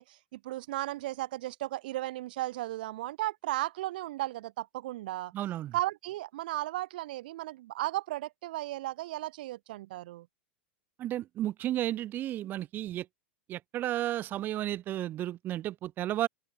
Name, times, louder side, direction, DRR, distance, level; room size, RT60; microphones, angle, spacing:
voice 1, 0.0-5.3 5.7-10.3, right 16 dB, 55° right, 7.4 m, -35 dB
voice 2, 5.3-5.7 11.0-13.1 13.5-16.3, right 13 dB, 35° right, 5.1 m, -33 dB
figure-of-eight pair, 90°, 6 cm